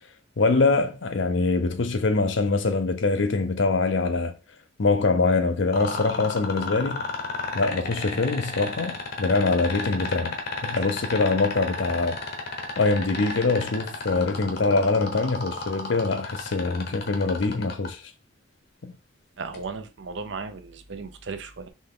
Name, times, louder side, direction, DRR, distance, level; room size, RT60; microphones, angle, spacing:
voice 1, 0.4-4.3 4.8-7.0 7.5-10.4 10.6-12.2 12.8-18.0 18.8-18.9, left 3 dB, 70° left, 0.6 m, -24 dB
sound 1, 5.7-17.9 19.5-19.6, left 4 dB, 55° left, 1.0 m, -32 dB
voice 2, 19.4-21.7, right 4 dB, 65° right, 0.6 m, -36 dB
4.1 x 3.3 x 3.7 m
head